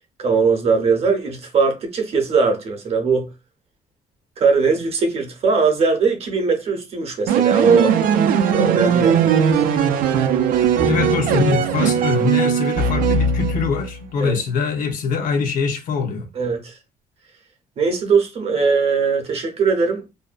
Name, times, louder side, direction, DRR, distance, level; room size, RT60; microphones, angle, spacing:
voice 1, 0.2-3.3 4.4-7.9 8.5-9.4 14.2-14.4 16.3-16.8 17.8-20.0, right 5 dB, 45° right, 0.7 m, -20 dB
sound 1, 7.3-13.9, right 7 dB, 80° right, 0.4 m, -18 dB
voice 2, 10.9-16.3, left 5 dB, 65° left, 0.7 m, -23 dB
2.6 x 2.1 x 2.4 m
cardioid pair, 125°, 14 cm